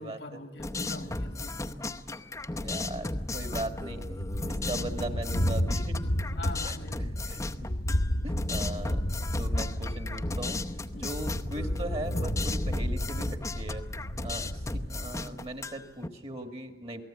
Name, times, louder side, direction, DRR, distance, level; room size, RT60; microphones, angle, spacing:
voice 1, 0.0-1.6 4.7-5.2 5.9-7.2 10.9-11.2 14.2-14.7, left 2 dB, 80° left, 7 dB, 2.0 m, -44 dB
sound 1, 0.6-16.1, left 2 dB, 20° left, 0.7 m, -36 dB
voice 2, 1.7-2.0 2.5-4.2 4.5-5.9 6.6-6.8 7.2-10.6 10.9-13.8 14.2-17.0, right 1 dB, 35° right, 5 dB, 2.2 m, -39 dB
Thunder, 2.4-15.1, equal, 60° left, 1.2 m, -32 dB
28.5 x 18.5 x 8.9 m, 1.1 s
head